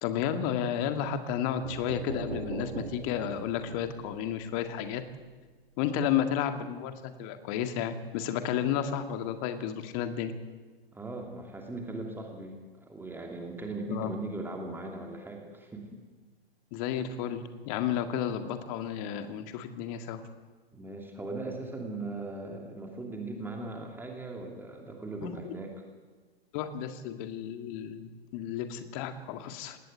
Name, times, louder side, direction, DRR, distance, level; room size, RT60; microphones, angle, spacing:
voice 1, 0.0-5.0 5.8-10.3 13.9-14.1 16.7-20.2 25.2-25.5 26.5-29.8, left 9 dB, 35° left, 8 dB, 2.0 m, -32 dB
sound 1, 1.6-5.4, right 4 dB, 75° right, 1.4 m, -41 dB
voice 2, 10.9-16.0 20.7-25.7, right 2 dB, 5° right, 1 dB, 2.7 m, -39 dB
20.0 x 18.0 x 8.3 m, 1.4 s
figure-of-eight pair, 115°, 31 cm